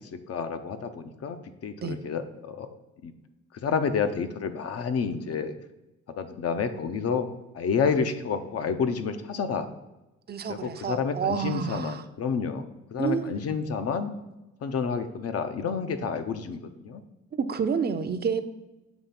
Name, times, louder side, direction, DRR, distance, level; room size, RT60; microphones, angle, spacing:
voice 1, 0.0-2.7 3.0-3.1 3.6-5.5 6.2-7.3 7.5-9.7 10.5-12.6 12.9-14.2 14.6-17.0, left 6 dB, 55° left, 9 dB, 0.7 m, -29 dB
voice 2, 10.3-12.0 13.0-13.4 17.3-18.4, right 6 dB, 35° right, 9 dB, 0.6 m, -29 dB
7.2 x 3.1 x 5.8 m, 0.99 s
cardioid pair, 90°, 30 cm